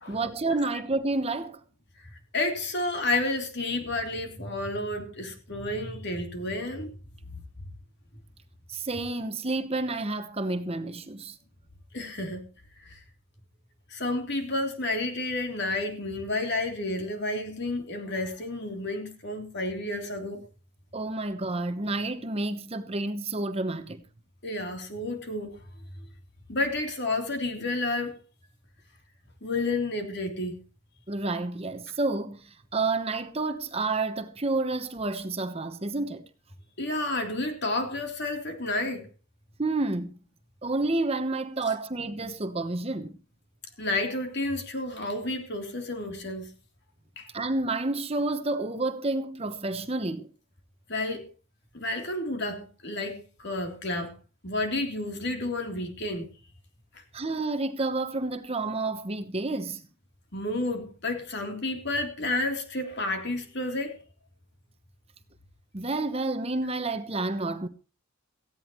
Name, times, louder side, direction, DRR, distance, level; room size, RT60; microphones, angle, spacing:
voice 1, 0.1-1.6 8.7-11.4 20.9-24.0 31.1-36.2 39.6-40.2 40.6-43.2 47.3-50.3 57.1-59.8 65.7-67.7, right 2 dB, 30° right, 1.0 m, -30 dB
voice 2, 2.3-6.9 7.3-7.4 11.9-12.4 12.8-13.0 13.9-20.4 24.4-25.6 26.5-28.2 29.4-30.6 36.8-39.1 43.8-46.5 47.2-47.3 50.9-51.3 51.7-54.1 54.4-56.3 56.9-57.0 60.3-64.0, left 2 dB, 50° left, 3.4 m, -31 dB
17.5 x 15.5 x 3.1 m
head